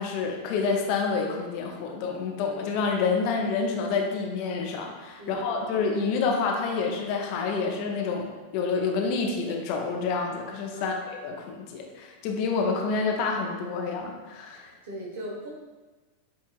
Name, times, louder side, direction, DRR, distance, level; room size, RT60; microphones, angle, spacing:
voice 1, 0.0-10.9 11.2-14.7, left 4 dB, 45° left, 1 dB, 0.7 m, -28 dB
voice 2, 5.2-5.7 10.7-11.0 14.8-15.5, equal, 55° right, -3 dB, 1.2 m, -39 dB
7.6 x 2.7 x 2.4 m, 1.3 s
figure-of-eight pair, 90°, 0 cm